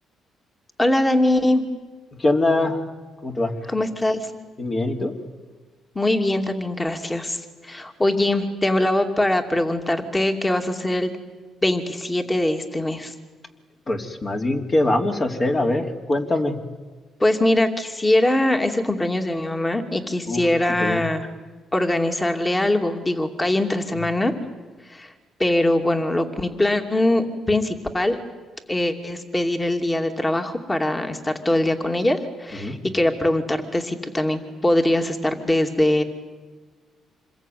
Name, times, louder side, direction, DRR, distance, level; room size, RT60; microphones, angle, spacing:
voice 1, 0.8-1.6 3.7-4.3 5.9-11.1 11.6-13.1 17.2-21.3 21.7-24.3 24.9-25.1 25.4-28.2 28.7-36.0, left 1 dB, 15° left, 5 dB, 2.7 m, -22 dB
voice 2, 2.1-2.9 3.2-3.7 4.6-5.1 13.9-16.6 20.3-21.0 23.9-24.0 32.5-32.8, left 2 dB, 35° left, 2 dB, 3.1 m, -23 dB
27.0 x 21.5 x 9.4 m, 1.3 s
cardioid pair, 90°, 0 cm